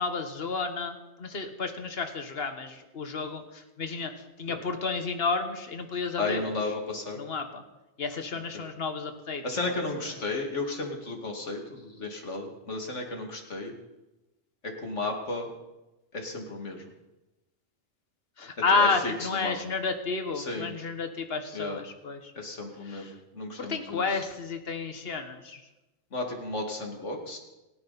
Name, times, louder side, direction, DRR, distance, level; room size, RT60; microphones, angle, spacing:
voice 1, 0.0-4.1 4.4-6.4 7.2-7.6 8.0-9.7 18.4-22.3 22.8-23.1 23.6-25.6, left 4 dB, 55° left, 7 dB, 1.7 m, -31 dB
voice 2, 6.2-7.2 8.5-8.6 9.4-13.7 14.6-15.5 16.1-16.9 18.7-19.6 20.4-20.7 21.5-21.8 22.3-24.2 26.1-27.4, left 2 dB, 80° left, 2 dB, 2.8 m, -34 dB
30.0 x 10.0 x 4.2 m, 1.0 s
omnidirectional pair, 1.2 m